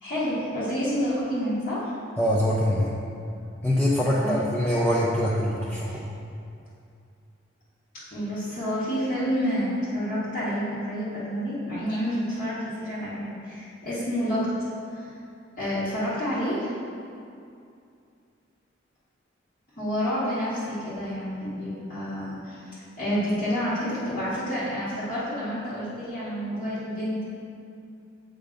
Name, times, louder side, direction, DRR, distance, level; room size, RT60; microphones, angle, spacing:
voice 1, 0.0-1.9 4.2-4.5 5.9-6.0 8.1-14.5 14.9-15.1 15.6-16.7 19.8-27.3, equal, 45° left, -14 dB, 1.3 m, -29 dB
voice 2, 2.2-2.9 3.6-6.1, equal, 10° left, -7 dB, 0.4 m, -23 dB
7.7 x 5.1 x 2.5 m, 2.5 s
head